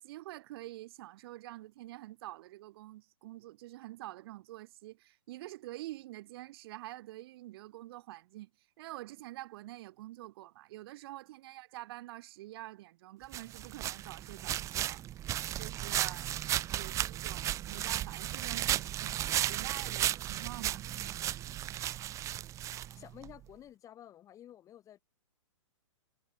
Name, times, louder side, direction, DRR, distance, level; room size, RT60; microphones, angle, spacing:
voice 1, 0.0-8.5 8.8-15.0 15.6-20.8, right 16 dB, 50° right, 3.5 m, -47 dB
sound 1, 13.3-23.3, right 12 dB, 20° right, 0.7 m, -35 dB
voice 2, 22.7-25.0, left 11 dB, 20° left, 1.3 m, -52 dB
hypercardioid pair, 140°, 17 cm